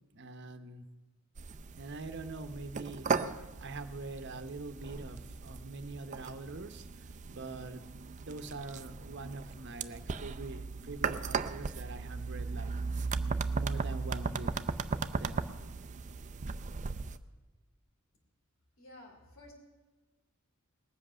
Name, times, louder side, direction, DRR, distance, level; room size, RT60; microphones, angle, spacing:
voice 1, 0.1-0.9 1.7-3.1 3.6-6.8 7.3-12.7 13.5-14.5 15.0-15.5, right 3 dB, 55° right, 9 dB, 0.9 m, -44 dB
sound 1, 1.4-17.2, right 4 dB, 35° right, 0.5 m, -37 dB
voice 2, 18.8-19.5, left 1 dB, 80° left, 0 dB, 2.9 m, -53 dB
19.5 x 7.9 x 6.2 m, 1.2 s
head